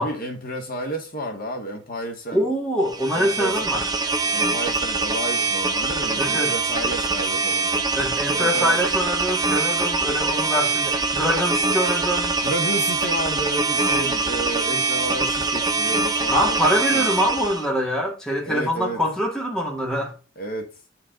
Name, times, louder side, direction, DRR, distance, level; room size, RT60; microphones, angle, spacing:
voice 1, 0.0-2.5 3.2-3.5 4.3-7.7 8.2-8.8 12.4-16.6 16.9-17.1 18.5-19.0 20.4-20.7, right 1 dB, 50° left, 1.9 m, -31 dB
voice 2, 2.3-3.9 6.2-6.5 7.9-12.4 16.3-20.1, equal, 5° left, 1.8 m, -24 dB
sound 1, 2.9-17.7, right 3 dB, 20° right, 0.9 m, -23 dB
9.8 x 4.6 x 3.8 m
head